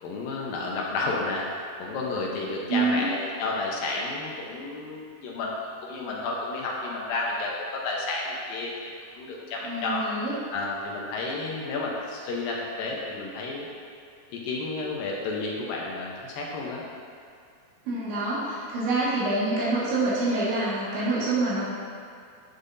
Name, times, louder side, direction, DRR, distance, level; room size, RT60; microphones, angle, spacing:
voice 1, 0.0-5.5 5.8-10.0 10.5-13.7 14.3-16.8, left 3 dB, 70° left, -3 dB, 2.3 m, -31 dB
voice 2, 2.7-3.1 9.6-10.4 17.9-21.7, right 2 dB, 90° right, -9 dB, 4.1 m, -26 dB
12.0 x 7.2 x 2.7 m, 2.3 s
omnidirectional pair, 4.9 m